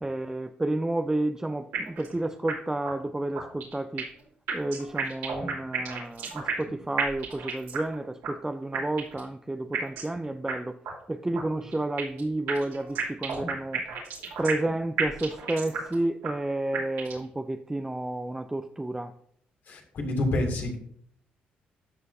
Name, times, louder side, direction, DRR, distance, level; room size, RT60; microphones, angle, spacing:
voice 1, 0.0-4.1 4.5-10.7 11.1-13.8 14.4-19.1, right 2 dB, 15° right, 7 dB, 0.5 m, -31 dB
sound 1, 1.7-2.1 2.5-2.6 2.8-2.9 3.3-4.2 4.5-6.7 7.0-7.9 8.2-8.3 8.7-9.2 9.7-10.1 10.5-10.6 10.8-10.9 11.3-12.2 12.5-14.7 15.0-15.9 16.2-16.3 16.7-17.2, right 7 dB, 85° right, 2.7 m, -32 dB
voice 2, 19.7-20.8, left 1 dB, 65° left, 1 dB, 2.5 m, -28 dB
12.0 x 6.1 x 2.7 m, 0.64 s
supercardioid pair, 70°, 4 cm